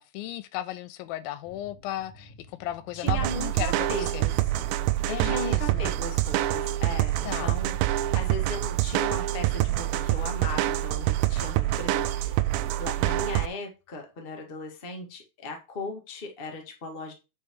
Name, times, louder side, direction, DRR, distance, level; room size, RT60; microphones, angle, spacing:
voice 1, 0.0-2.3 2.6-4.3 5.1-5.9 7.2-7.6, left 13 dB, 85° left, 2.4 m, -35 dB
sound 1, 1.5-13.4, left 2 dB, 65° left, 3.1 m, -53 dB
voice 2, 2.9-4.7 5.1-12.3 12.8-17.1, left 2 dB, 35° left, 0.9 m, -37 dB
sound 2, 3.1-13.5, right 15 dB, 90° right, 2.4 m, -26 dB
8.5 x 4.8 x 3.7 m
omnidirectional pair, 4.1 m